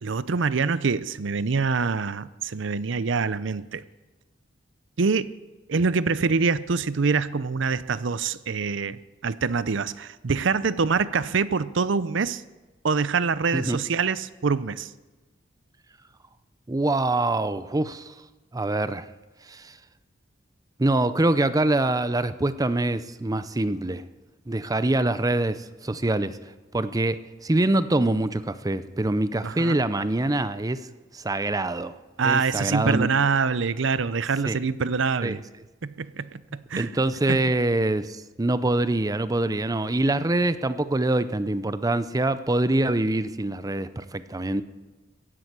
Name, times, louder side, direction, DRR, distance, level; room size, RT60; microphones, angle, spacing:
voice 1, 0.0-3.8 5.0-5.3 5.7-12.4 12.8-14.9 29.4-29.8 32.2-35.4 35.8-36.9 37.3-37.4, right 5 dB, 70° right, 16 dB, 0.6 m, -25 dB
voice 2, 16.7-18.1 18.5-19.1 19.5-19.7 20.8-24.0 24.5-26.4 26.7-30.8 31.1-31.9 32.2-33.1 34.5-34.6 35.2-35.4 36.8-44.6, right 2 dB, 20° right, 14 dB, 0.6 m, -24 dB
15.5 x 11.0 x 8.2 m, 1.2 s
head